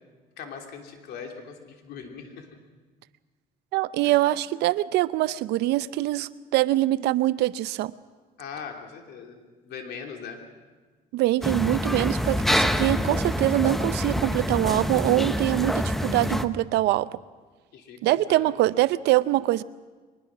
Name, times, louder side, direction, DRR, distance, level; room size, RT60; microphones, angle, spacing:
voice 1, 0.4-2.5 4.0-4.3 8.4-10.4 17.7-18.7, left 6 dB, 75° left, 3 dB, 3.2 m, -40 dB
voice 2, 3.7-7.9 11.1-17.1 18.0-19.6, right 16 dB, 85° right, 16 dB, 0.6 m, -24 dB
sound 1, 11.4-16.4, equal, ahead, 0.8 m, -26 dB
22.5 x 20.0 x 6.2 m, 1.3 s
cardioid pair, 110°, 17 cm